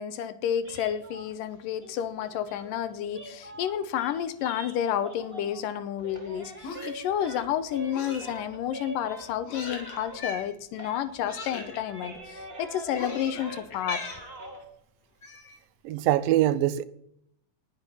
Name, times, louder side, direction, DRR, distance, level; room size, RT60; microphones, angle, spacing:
voice 1, 0.0-14.0, left 10 dB, 80° left, 2.5 m, -30 dB
sound 1, 0.6-5.7 6.0-10.5 10.8-14.6, right 2 dB, 25° right, 1.4 m, -44 dB
sound 2, 6.6-7.1 7.9-8.4 9.4-10.0 11.2-11.8 13.0-13.8, left 4 dB, 55° left, 3.3 m, -40 dB
Cat, 10.0-10.5 11.6-11.7 12.9-13.2 13.7-14.3 15.2-15.6, left 3 dB, 35° left, 1.9 m, -38 dB
voice 2, 15.8-16.8, right 13 dB, 90° right, 2.5 m, -23 dB
19.0 x 6.9 x 5.6 m
omnidirectional pair, 3.9 m